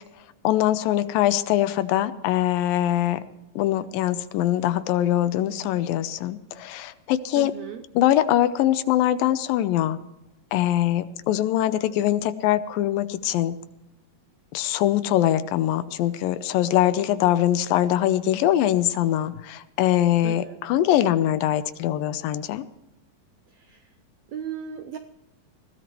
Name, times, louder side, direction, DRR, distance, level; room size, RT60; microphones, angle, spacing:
voice 1, 0.4-3.2 3.6-7.5 7.9-10.0 10.5-13.6 14.5-22.6, left 12 dB, 90° left, 13 dB, 2.5 m, -22 dB
voice 2, 7.4-7.8 20.2-20.6 23.7-23.8 24.3-25.0, right 8 dB, 80° right, 7 dB, 1.5 m, -35 dB
20.5 x 16.5 x 3.1 m, 0.93 s
omnidirectional pair, 4.0 m